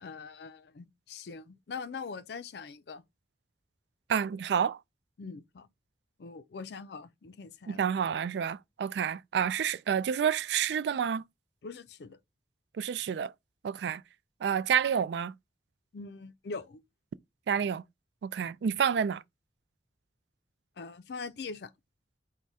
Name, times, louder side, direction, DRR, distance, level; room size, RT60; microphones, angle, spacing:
voice 1, 0.0-3.0 5.2-5.7 6.2-7.8 11.6-12.2 15.9-16.8 20.8-21.7, left 4 dB, 65° left, 0.4 m, -42 dB
voice 2, 4.1-4.8 7.7-11.2 12.8-13.3 13.6-14.0 14.4-15.3 17.5-17.8 18.2-19.2, right 7 dB, 70° right, 0.3 m, -29 dB
4.6 x 2.1 x 4.1 m
head